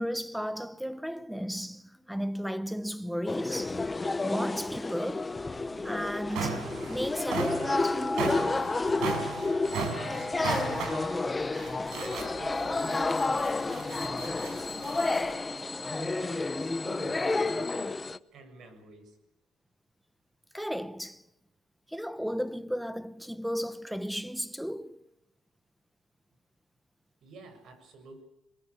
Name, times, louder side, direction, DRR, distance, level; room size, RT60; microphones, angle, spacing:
voice 1, 0.0-3.9 4.2-5.4 5.8-8.8 20.5-21.2 21.9-25.1, equal, ahead, 1.1 m, -34 dB
sound 1, 3.3-18.2, left 3 dB, 25° left, 0.9 m, -30 dB
sound 2, 5.6-5.7 6.1-15.3, right 5 dB, 90° right, 6.0 m, -37 dB
voice 2, 9.4-11.5 12.3-15.1 15.9-18.0 18.3-19.2 27.2-28.2, right 3 dB, 70° right, 6.7 m, -49 dB
22.0 x 21.5 x 8.5 m
cardioid pair, 90°, 0 cm